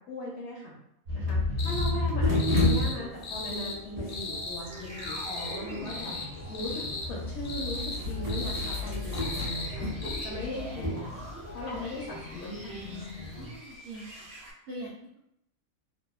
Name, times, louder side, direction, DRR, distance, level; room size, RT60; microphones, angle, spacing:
voice 1, 0.1-0.8 1.1-6.2 6.5-9.9 10.2-11.2 11.5-13.1, left 1 dB, 65° left, -2 dB, 0.7 m, -38 dB
sound 1, 1.1-2.9 4.6-14.5, left 2 dB, 50° right, 0.9 m, -34 dB
sound 2, 1.6-1.9 2.4-3.0 3.2-3.8 4.1-4.6 5.0-5.6 5.9-6.3 6.5-7.1 7.5-8.0 8.3-8.8 9.1-9.7 10.0-10.3, left 3 dB, 90° left, 1.1 m, -37 dB
sound 3, 2.2-13.5, left 1 dB, 20° right, 0.5 m, -35 dB
voice 2, 13.3-14.3 14.6-15.2, right 1 dB, 65° right, -6 dB, 0.6 m, -43 dB
2.7 x 2.2 x 2.3 m, 0.78 s
omnidirectional pair, 1.5 m